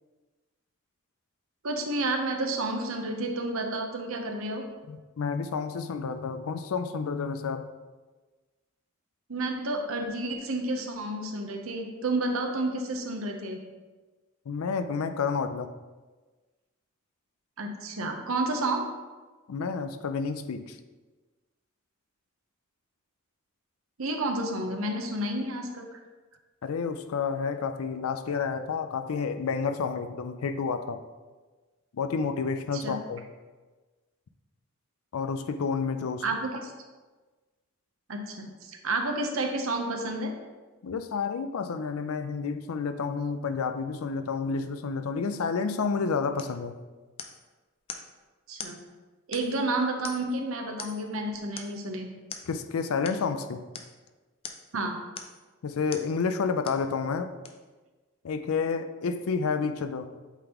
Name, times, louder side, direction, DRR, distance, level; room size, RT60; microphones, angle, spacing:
voice 1, 1.6-4.7 9.3-13.6 17.6-18.8 24.0-26.0 32.7-33.0 36.2-36.7 38.1-40.3 48.5-48.8 49.3-52.1 54.7-55.0, right 2 dB, 75° right, 4 dB, 0.8 m, -30 dB
voice 2, 4.9-7.7 14.5-15.7 19.5-20.8 26.6-31.0 31.9-33.2 35.1-36.2 40.8-46.7 52.5-53.6 55.6-57.3 58.2-60.1, left 5 dB, 85° left, 9 dB, 0.4 m, -30 dB
sound 1, 46.4-46.6 47.2-47.5 47.9-48.1 48.6-48.8 49.3-49.7 50.0-50.4 50.8-51.1 51.6-51.8 52.3-52.5 53.0-53.2 53.7-53.9 54.4-54.7 55.1-55.4 55.9-56.1 56.6-56.9 57.4-57.5, left 6 dB, 25° left, 0.4 m, -42 dB
8.0 x 3.9 x 3.0 m, 1.3 s
head